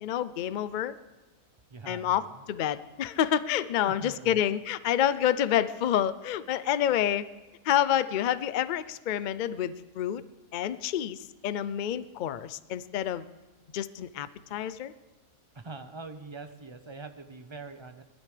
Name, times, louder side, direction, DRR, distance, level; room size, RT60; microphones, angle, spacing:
voice 1, 0.0-1.0 1.9-7.2 7.7-10.2 10.5-11.2 11.4-13.2 13.7-14.9, left 10 dB, 85° left, 15 dB, 0.4 m, -28 dB
voice 2, 1.7-2.5 3.8-4.4 15.5-18.0, right 3 dB, 25° right, 7 dB, 0.7 m, -43 dB
20.0 x 13.5 x 3.3 m, 1.2 s
omnidirectional pair, 1.5 m